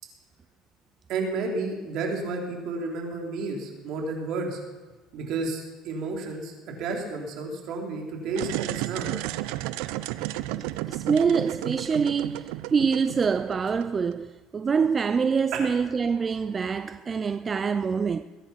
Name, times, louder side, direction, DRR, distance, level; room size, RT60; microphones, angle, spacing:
voice 1, 1.1-4.6 5.1-6.5 6.8-9.1 15.5-15.7, right 3 dB, 60° right, 4.0 m, -31 dB
sound 1, 8.3-14.1, right 16 dB, 80° right, 0.6 m, -33 dB
voice 2, 10.6-18.2, right 5 dB, 25° right, 0.4 m, -25 dB
21.5 x 9.9 x 5.9 m
cardioid pair, 120°, 0 cm